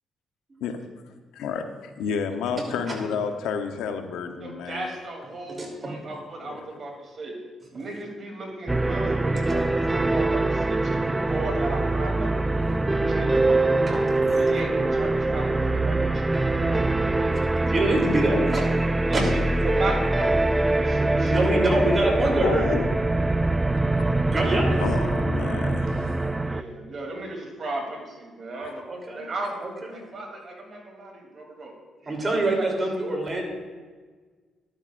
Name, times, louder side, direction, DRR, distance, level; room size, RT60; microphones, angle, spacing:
voice 1, 2.0-5.0 6.4-6.8 22.4-22.9 24.8-26.2 28.6-28.7, left 6 dB, 90° left, 6 dB, 0.8 m, -30 dB
voice 2, 4.4-6.9 7.2-7.3 7.7-14.0 14.4-17.1 19.1-19.2 19.6-20.4 20.8-21.3 26.2-28.8 29.1-29.5 30.1-31.7 32.0-32.4, right 2 dB, 45° right, 1 dB, 2.9 m, -35 dB
voice 3, 5.5-5.9 9.5-9.6 17.3-19.2 21.0-22.6 24.2-24.8 28.9-29.2 29.6-30.0 32.0-33.4, right 1 dB, 30° right, 0 dB, 3.1 m, -25 dB
sound 1, 8.7-26.6, right 2 dB, 15° right, 0.3 m, -23 dB
12.5 x 12.0 x 2.5 m, 1.5 s
cardioid pair, 90°, 0 cm